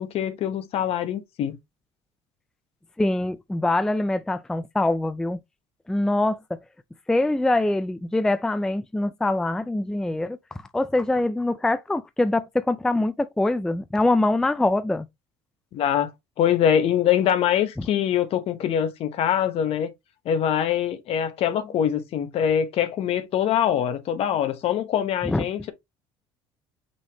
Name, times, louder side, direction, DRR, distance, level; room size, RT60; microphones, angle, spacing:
voice 1, 0.0-1.6 15.7-16.1 16.4-19.9 20.2-25.7, left 9 dB, 55° left, 1.0 m, -23 dB
voice 2, 3.0-5.4 5.9-6.6 7.1-10.4 10.7-15.1 25.2-25.4, left 2 dB, 5° left, 0.3 m, -24 dB
5.3 x 3.5 x 2.8 m
cardioid pair, 105°, 12 cm